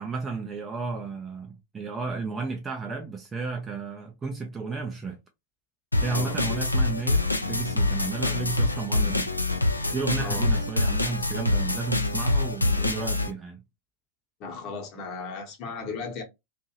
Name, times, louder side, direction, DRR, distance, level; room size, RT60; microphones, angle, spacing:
voice 1, 0.0-5.2 6.0-9.3 9.9-13.6, right 4 dB, 15° right, 0.4 m, -33 dB
sound 1, 5.9-13.3, left 2 dB, 85° left, 0.4 m, -25 dB
voice 2, 10.2-10.5 14.4-16.2, left 4 dB, 40° left, 1.0 m, -36 dB
2.6 x 2.4 x 2.8 m
figure-of-eight pair, 90°, 0 cm